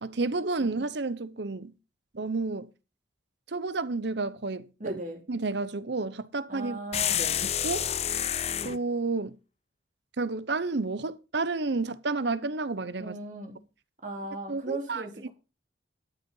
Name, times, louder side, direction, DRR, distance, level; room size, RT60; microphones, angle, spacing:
voice 1, 0.0-1.7 2.1-2.7 3.5-5.0 5.3-6.8 7.6-7.9 8.6-9.4 10.2-13.2 14.5-15.3, right 3 dB, 65° right, 0.8 m, -31 dB
voice 2, 4.8-5.2 6.5-7.4 13.0-13.6 14.0-15.3, right 2 dB, 40° right, 3.4 m, -37 dB
sound 1, 6.9-8.8, left 10 dB, 35° left, 0.5 m, -28 dB
12.5 x 6.8 x 5.5 m
head